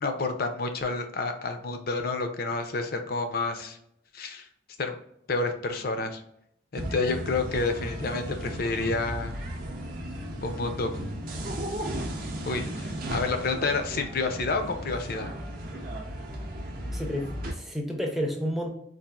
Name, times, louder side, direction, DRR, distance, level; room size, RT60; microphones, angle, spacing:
voice 1, 0.0-3.8 4.1-4.5 4.8-5.0 5.3-6.2 6.7-9.4 10.4-10.9 12.4-15.3, left 3 dB, 50° left, 7 dB, 0.5 m, -29 dB
sound 1, 6.7-17.5, right 1 dB, 45° right, 0.6 m, -35 dB
voice 2, 16.9-18.7, equal, ahead, 1 dB, 0.5 m, -30 dB
4.0 x 2.5 x 2.3 m, 0.75 s
head